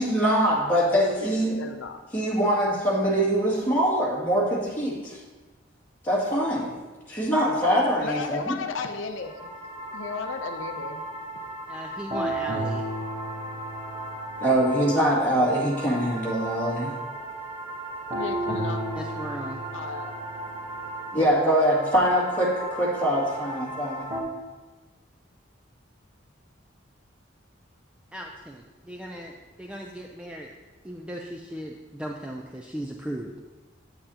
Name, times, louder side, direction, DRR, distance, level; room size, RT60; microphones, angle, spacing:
voice 1, 0.0-1.6 2.1-5.2 6.0-6.7 7.1-8.6 14.4-16.9 21.1-24.1, equal, 10° left, -7 dB, 2.2 m, -23 dB
voice 2, 1.5-2.0 8.0-9.5 9.9-11.0 18.1-18.8 19.7-20.1, left 4 dB, 80° left, 6 dB, 0.6 m, -34 dB
sound 1, 9.2-24.2, right 1 dB, 25° right, 0.9 m, -34 dB
voice 3, 11.7-12.8 18.9-19.6 28.1-30.5 30.8-33.5, right 1 dB, 5° right, 1 dB, 0.4 m, -37 dB
8.9 x 8.7 x 2.8 m, 1.2 s
head